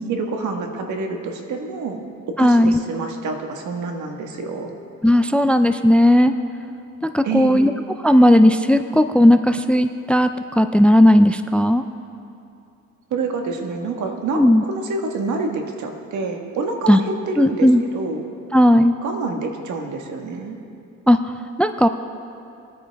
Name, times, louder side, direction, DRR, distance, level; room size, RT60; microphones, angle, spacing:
voice 1, 0.0-2.0 2.4-4.7 7.2-7.7 13.1-18.2 19.0-20.6, right 3 dB, 75° right, 3 dB, 1.6 m, -27 dB
voice 2, 2.4-2.8 5.0-6.3 7.1-7.7 8.0-10.3 10.6-11.8 14.3-14.6 16.9-17.0 17.4-17.8 18.5-18.9 21.1-21.2 21.6-21.9, left 1 dB, 5° left, 10 dB, 0.4 m, -15 dB
22.0 x 9.2 x 3.5 m, 2.6 s
cardioid pair, 90°, 30 cm